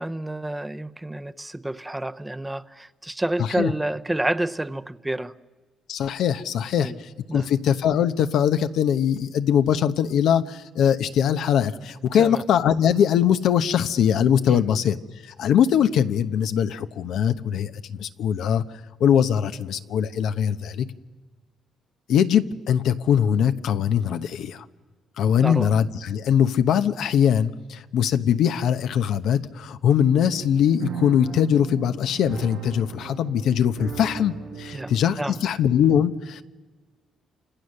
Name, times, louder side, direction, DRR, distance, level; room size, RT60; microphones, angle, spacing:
voice 1, 0.0-5.3 6.8-7.0 7.3-7.5 12.2-12.4 14.5-14.7 25.4-25.7 34.7-34.9 35.2-35.4, right 1 dB, 10° right, 0.7 m, -29 dB
voice 2, 3.4-3.7 5.9-6.9 7.3-15.0 15.4-18.6 19.0-20.8 22.1-24.6 25.2-36.4, left 9 dB, 80° left, 0.9 m, -21 dB
sound 1, 30.2-35.8, right 8 dB, 85° right, 6.6 m, -38 dB
28.0 x 27.0 x 6.6 m
cardioid pair, 90°, 0 cm